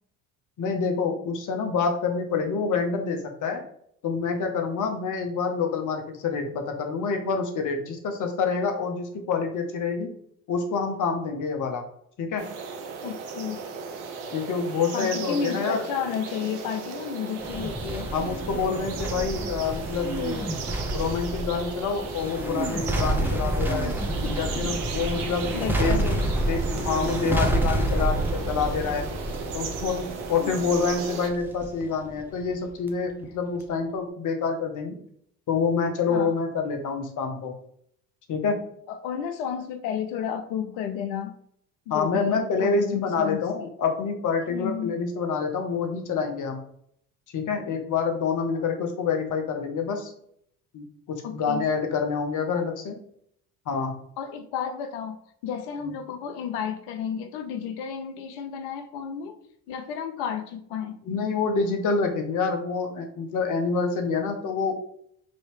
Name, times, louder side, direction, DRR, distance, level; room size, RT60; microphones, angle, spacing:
voice 1, 0.6-3.6 4.0-10.1 10.5-11.8 12.2-12.4 14.3-15.8 18.1-20.4 20.9-23.9 24.3-25.5 25.8-26.0 26.5-29.0 29.5-35.0 35.5-37.5 38.3-38.6 41.9-46.6 47.3-50.1 50.7-53.0 53.7-53.9 55.8-55.9 61.1-64.8, left 5 dB, 45° left, 5 dB, 0.9 m, -27 dB
sound 1, 12.4-31.3, right 5 dB, 65° right, 0.7 m, -36 dB
voice 2, 13.0-13.6 14.9-18.1 24.2-24.8 25.1-25.3 25.5-26.3 27.2-27.4 30.4-30.7 36.1-36.3 38.9-41.4 41.9-43.7 44.5-44.9 51.2-51.6 54.2-55.2 55.4-59.4 59.7-61.0, left 8 dB, 70° left, 7 dB, 0.6 m, -32 dB
sound 2, 17.4-32.9 33.2-33.3, right 1 dB, 5° right, 0.6 m, -29 dB
3.1 x 2.7 x 3.1 m, 0.69 s
hypercardioid pair, 60°, 44 cm